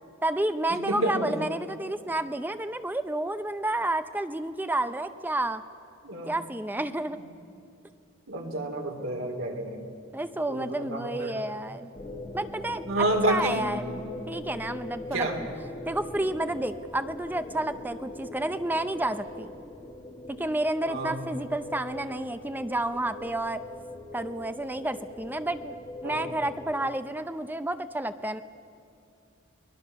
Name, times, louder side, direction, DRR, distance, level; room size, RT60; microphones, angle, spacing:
voice 1, 0.2-5.6 6.3-7.2 10.1-11.9 12.3-13.9 14.3-15.5 15.9-19.5 20.3-23.6 24.1-25.8 26.0-28.4, right 1 dB, 10° right, 10 dB, 0.5 m, -30 dB
voice 2, 0.9-1.4 6.0-6.3 8.3-9.8 10.5-11.3 12.9-13.6 15.1-15.4 20.9-21.2 26.0-26.2, right 1 dB, 70° right, 2 dB, 3.6 m, -29 dB
sound 1, 11.9-26.9, left 1 dB, 20° left, 1.5 m, -41 dB
29.5 x 20.5 x 7.0 m, 2.7 s
head